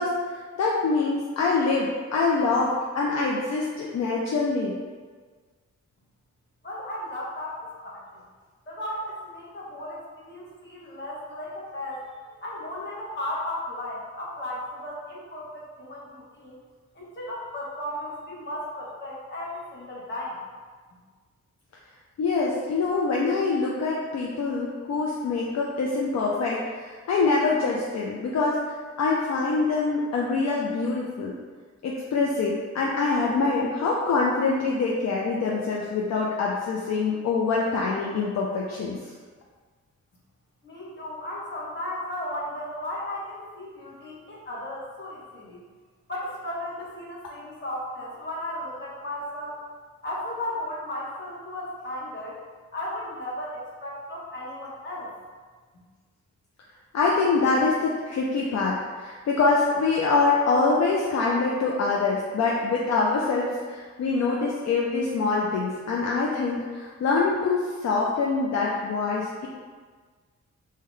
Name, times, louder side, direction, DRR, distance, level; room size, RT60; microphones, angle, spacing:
voice 1, 0.0-4.7 22.2-31.4 31.8-39.1 56.9-69.5, left 4 dB, 65° left, -3 dB, 0.4 m, -25 dB
voice 2, 6.6-8.2 8.7-12.0 12.4-16.6 16.9-20.4 40.6-45.6 46.1-49.6 50.0-52.4 52.7-55.1, left 1 dB, 40° left, -5 dB, 1.0 m, -35 dB
3.6 x 2.2 x 3.2 m, 1.5 s
wide cardioid pair, 100°, 29 cm